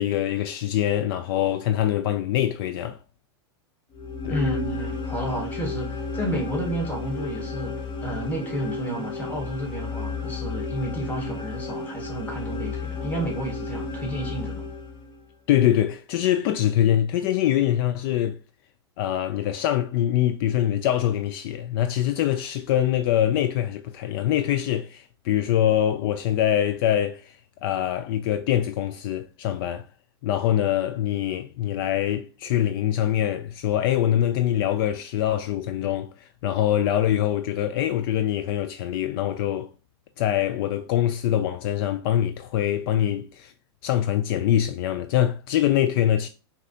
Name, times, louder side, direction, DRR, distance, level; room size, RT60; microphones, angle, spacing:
voice 1, 0.0-3.0 4.2-4.4 15.5-18.4 19.0-27.4 27.6-29.9 30.2-39.7 40.2-43.5 43.8-46.3, left 11 dB, 60° left, 0.4 m, -24 dB
sound 1, 3.9-15.2, left 3 dB, 35° left, 0.9 m, -32 dB
voice 2, 4.3-14.7, equal, 10° left, 1.3 m, -31 dB
5.1 x 2.8 x 2.7 m
hypercardioid pair, 120°, 14 cm